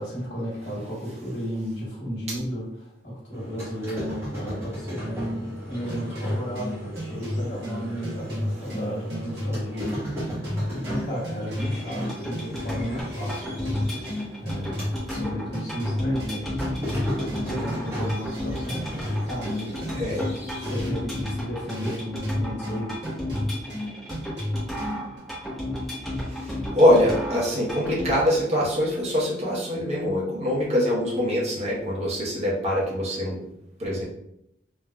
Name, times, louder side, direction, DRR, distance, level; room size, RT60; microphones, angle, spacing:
voice 1, 0.0-14.0 14.4-16.5 17.4-20.3 20.6-23.0, equal, 70° left, -6 dB, 1.4 m, -33 dB
sound 1, 3.3-15.2 15.6-20.8, equal, 15° right, 1.2 m, -37 dB
sound 2, 5.9-25.2, left 1 dB, 65° right, 1.2 m, -33 dB
sound 3, 11.6-28.1, left 1 dB, ahead, 1.0 m, -34 dB
voice 2, 26.3-33.4 33.8-34.0, equal, 35° right, -5 dB, 0.8 m, -23 dB
3.4 x 2.6 x 2.2 m, 0.78 s
head